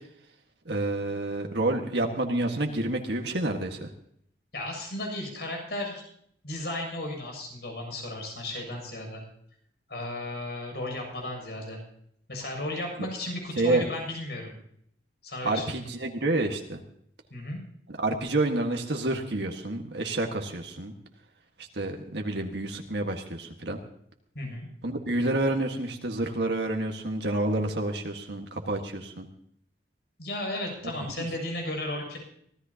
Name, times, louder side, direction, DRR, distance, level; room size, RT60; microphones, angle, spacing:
voice 1, 0.6-3.9 13.6-13.9 15.4-16.8 18.0-20.9 21.7-23.8 24.8-29.3, right 2 dB, 75° right, 2 dB, 1.7 m, -29 dB
voice 2, 4.5-6.0 6.4-9.2 9.9-11.8 12.3-14.6 15.2-15.8 17.3-17.6 24.3-24.7 30.2-32.2, left 1 dB, 65° left, 1 dB, 7.2 m, -34 dB
24.5 x 16.5 x 2.9 m, 0.68 s
head